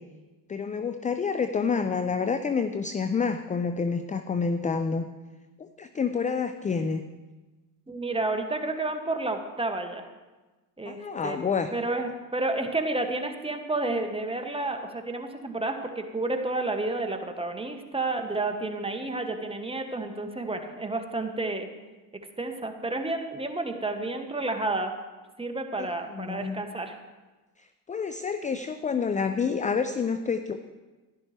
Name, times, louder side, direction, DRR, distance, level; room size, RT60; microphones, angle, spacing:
voice 1, 0.5-5.1 5.6-7.1 10.9-11.7 25.8-25.9 26.1-26.6 27.9-30.7, left 5 dB, 15° left, 9 dB, 0.4 m, -28 dB
voice 2, 7.9-10.1 10.8-11.4 11.7-21.7 22.4-24.9 25.4-27.0, right 2 dB, 10° right, 5 dB, 1.2 m, -30 dB
11.0 x 11.0 x 3.3 m, 1.2 s
hypercardioid pair, 65°, 49 cm